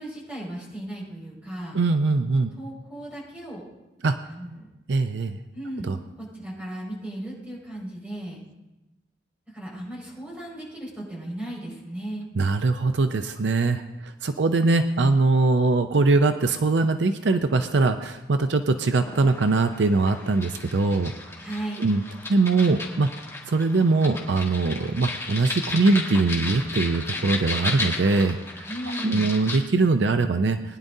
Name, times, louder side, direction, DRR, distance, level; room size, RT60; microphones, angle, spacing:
voice 1, 0.0-1.8 2.5-3.6 4.3-4.7 5.5-5.9 6.2-8.4 9.5-12.3 21.4-22.0 28.7-29.3, right 1 dB, 10° right, -5 dB, 5.3 m, -36 dB
voice 2, 1.7-2.5 4.0-4.2 4.9-5.4 5.9-6.0 12.4-21.1 21.8-22.0 22.3-23.1 23.5-28.7 29.0-30.8, right 3 dB, 70° right, 8 dB, 0.5 m, -22 dB
sound 1, 19.0-29.6, left 3 dB, 15° left, 1.9 m, -34 dB
20.5 x 10.5 x 2.7 m, 1.0 s
head